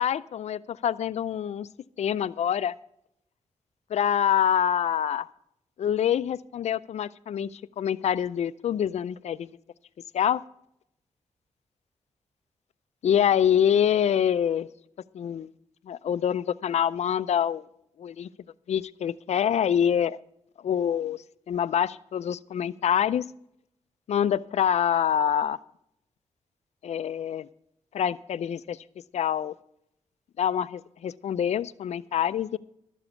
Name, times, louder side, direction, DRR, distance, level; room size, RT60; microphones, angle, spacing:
voice 1, 0.0-1.7 2.0-2.7 3.9-5.3 5.8-9.5 10.1-10.4 13.0-14.7 15.1-15.5 15.9-17.6 18.0-18.3 18.7-20.2 20.6-21.2 21.5-23.2 24.1-25.6 26.8-27.5 27.9-28.8 29.1-29.5 30.4-32.6, left 9 dB, 70° left, 17 dB, 0.4 m, -25 dB
12.5 x 7.0 x 7.0 m, 0.78 s
wide cardioid pair, 105°, 12 cm